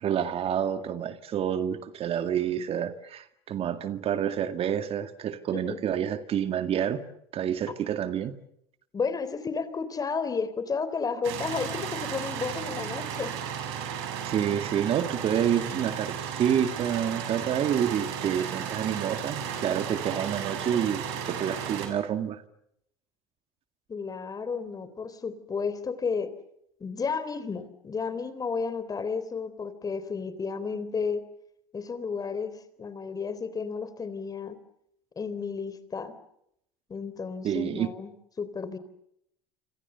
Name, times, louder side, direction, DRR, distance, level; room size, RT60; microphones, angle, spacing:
voice 1, 0.0-7.0 7.3-8.3 14.2-22.4 37.4-37.9, right 9 dB, 45° right, 9 dB, 2.1 m, -28 dB
voice 2, 8.9-13.3 23.9-26.3 26.8-31.2 31.7-34.6 35.2-36.1 36.9-38.1 38.4-38.8, left 5 dB, 30° left, 13 dB, 3.7 m, -32 dB
sound 1, 11.2-21.9, right 8 dB, 80° right, 6.4 m, -34 dB
27.0 x 26.5 x 6.9 m, 0.76 s
hypercardioid pair, 85°, 13 cm